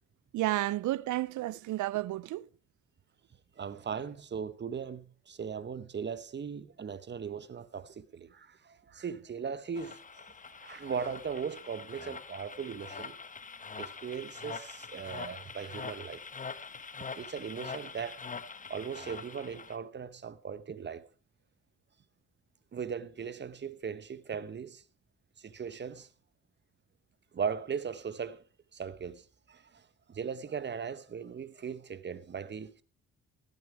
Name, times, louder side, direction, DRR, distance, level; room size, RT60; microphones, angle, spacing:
voice 1, 0.3-2.4, right 16 dB, 80° right, 0.6 m, -31 dB
voice 2, 3.6-10.3 10.6-13.1 13.8-16.2 17.1-18.2 18.7-21.1 22.7-24.8 25.4-26.1 27.3-28.4 28.7-32.8, right 6 dB, 35° right, 1.1 m, -38 dB
sound 1, 9.8-19.8, left 5 dB, 25° left, 1.2 m, -44 dB
16.5 x 9.7 x 4.6 m
cardioid pair, 90°, 30 cm